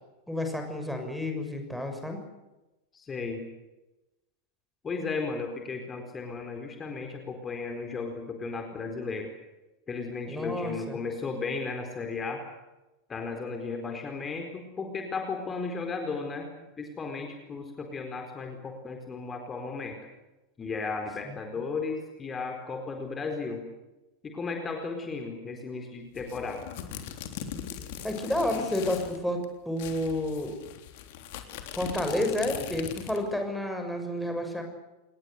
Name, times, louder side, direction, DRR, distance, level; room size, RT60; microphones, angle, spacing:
voice 1, 0.3-2.2 10.3-11.0 21.3-21.4 28.0-30.6 31.7-34.6, left 1 dB, ahead, 4 dB, 6.6 m, -30 dB
voice 2, 2.9-3.4 4.8-9.3 9.9-12.4 13.1-16.5 16.8-20.0 20.6-23.6 24.2-26.6, left 4 dB, 20° left, 4 dB, 4.5 m, -35 dB
sound 1, 26.1-29.2 29.4-29.5 29.8-33.3, left 9 dB, 50° left, 3.5 m, -40 dB
28.0 x 21.0 x 8.3 m, 1.0 s
figure-of-eight pair, 90°, 0 cm